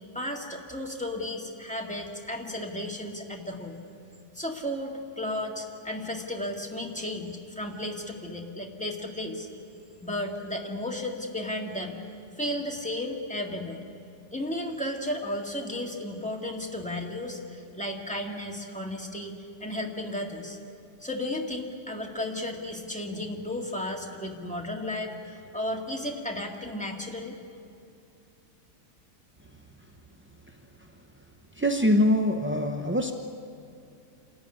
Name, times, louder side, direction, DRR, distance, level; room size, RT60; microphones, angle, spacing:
voice 1, 0.1-3.8 4.3-9.5 10.0-12.0 12.4-13.8 14.3-19.3 19.6-20.6 21.0-27.3, left 1 dB, 5° left, 0 dB, 2.0 m, -34 dB
voice 2, 31.6-33.1, left 1 dB, 20° right, 4 dB, 0.3 m, -23 dB
27.5 x 14.0 x 10.0 m, 2.5 s
omnidirectional pair, 1.7 m